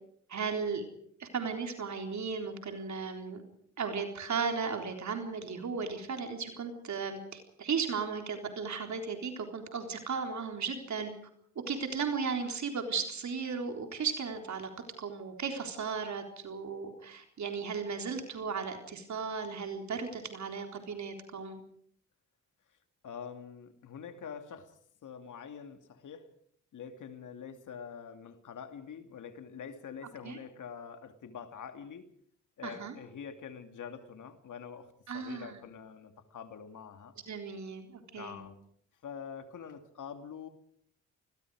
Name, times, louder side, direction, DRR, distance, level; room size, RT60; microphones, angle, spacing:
voice 1, 0.3-0.8 1.2-3.4 3.8-11.1 11.7-14.7 15.0-21.6 30.2-30.4 32.6-32.9 35.1-35.6 37.3-38.4, right 5 dB, 60° right, 3.9 m, -35 dB
voice 2, 23.0-26.3 26.7-32.1 32.6-37.1 38.1-38.6 39.0-40.5, left 7 dB, 70° left, 2.6 m, -45 dB
28.5 x 20.5 x 4.9 m
cardioid pair, 60°, 31 cm